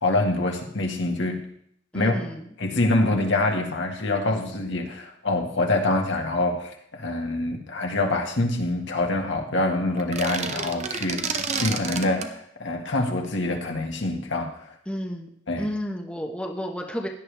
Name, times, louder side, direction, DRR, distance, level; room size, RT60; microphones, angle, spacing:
voice 1, 0.0-1.4 1.9-2.1 2.6-14.8 15.5-15.7, left 2 dB, 65° left, 2 dB, 1.8 m, -25 dB
voice 2, 1.9-2.5 14.9-15.3 15.6-17.1, equal, 5° left, 1 dB, 1.1 m, -31 dB
sound 1, 10.0-12.3, right 5 dB, 35° right, 0.9 m, -30 dB
16.5 x 11.0 x 3.5 m, 0.68 s
head